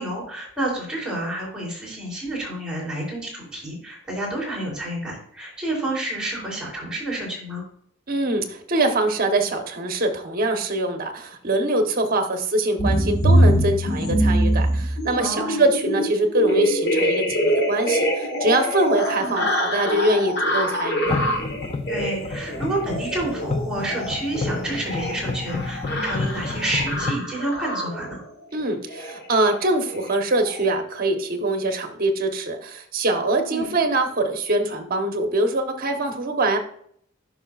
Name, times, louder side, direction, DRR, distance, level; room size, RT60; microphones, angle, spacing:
voice 1, 0.0-7.6 15.2-15.6 19.2-19.5 21.9-28.2 33.5-33.7, right 1 dB, 5° right, -5 dB, 3.2 m, -29 dB
voice 2, 8.1-21.2 22.5-22.6 28.5-36.6, right 2 dB, 50° right, 5 dB, 1.0 m, -23 dB
sound 1, 12.8-28.2 28.9-29.2 29.4-29.7 29.9-30.1 30.4-30.6, equal, 55° left, 1.4 m, -24 dB
sound 2, 21.0-27.1, left 3 dB, 30° left, 0.4 m, -30 dB
10.5 x 5.8 x 2.4 m, 0.64 s
head